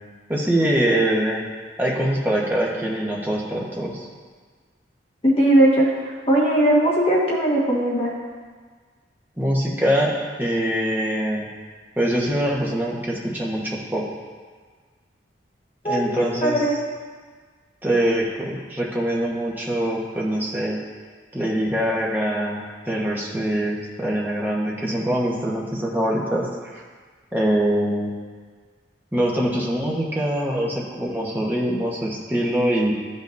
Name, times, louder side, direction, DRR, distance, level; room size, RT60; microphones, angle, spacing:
voice 1, 0.3-1.4 1.8-4.1 9.4-11.5 12.0-14.1 15.8-16.6 17.8-20.8 21.3-26.5 26.7-26.8 27.3-28.1 29.1-32.9, right 1 dB, 10° right, -3 dB, 1.1 m, -23 dB
voice 2, 5.2-8.1 15.8-16.8, right 1 dB, 30° left, -5 dB, 1.4 m, -19 dB
12.5 x 5.4 x 2.6 m, 1.5 s
head